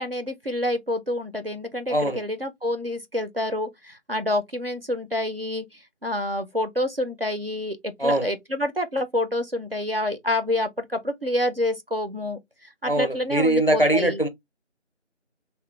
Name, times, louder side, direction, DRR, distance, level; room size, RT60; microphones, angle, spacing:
voice 1, 0.0-14.2, left 1 dB, 50° right, 0.5 m, -28 dB
voice 2, 1.9-2.2 8.0-8.3 12.8-14.3, right 1 dB, 50° left, 0.4 m, -22 dB
2.9 x 2.0 x 3.0 m
figure-of-eight pair, 175°, 37 cm